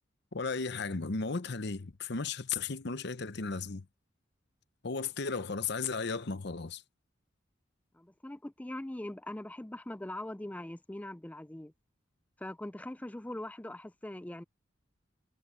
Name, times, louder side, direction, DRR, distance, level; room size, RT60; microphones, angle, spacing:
voice 1, 0.3-3.8 4.8-6.8, left 4 dB, 60° left, 0.9 m, -35 dB
voice 2, 7.9-11.7 12.4-14.4, left 1 dB, 5° left, 0.4 m, -41 dB
head